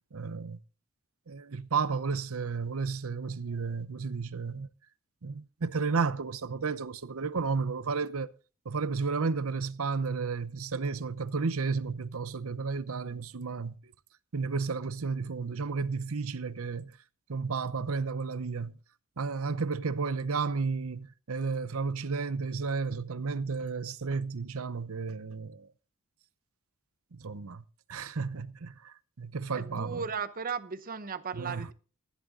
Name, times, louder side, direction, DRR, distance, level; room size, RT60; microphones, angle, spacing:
voice 1, 0.1-0.6 1.3-4.7 5.2-8.3 8.6-13.8 14.3-16.9 17.3-18.8 19.2-25.7 27.1-27.6 27.9-30.0 31.3-31.7, right 4 dB, 70° right, 0.7 m, -32 dB
voice 2, 29.5-31.7, right 6 dB, 40° right, 0.8 m, -36 dB
15.0 x 10.5 x 3.7 m
head